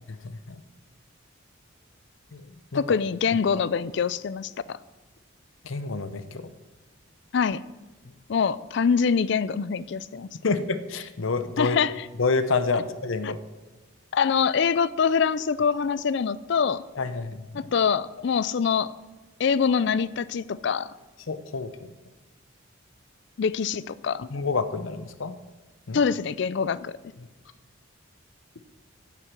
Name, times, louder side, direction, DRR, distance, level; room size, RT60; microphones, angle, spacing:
voice 1, 0.2-0.6 2.3-2.5 2.7-2.8 5.6-6.4 10.4-11.8 12.2-13.4 17.0-17.7 21.3-21.7 24.3-25.4 25.9-26.0, left 4 dB, 75° left, 11 dB, 0.8 m, -28 dB
voice 2, 2.7-4.8 7.3-7.6 8.3-10.3 11.6-12.1 13.2-13.3 14.1-16.8 17.5-18.9 19.4-20.9 23.4-24.3 25.9-26.9, left 6 dB, 60° left, 18 dB, 0.4 m, -24 dB
9.3 x 8.2 x 6.1 m, 1.2 s
head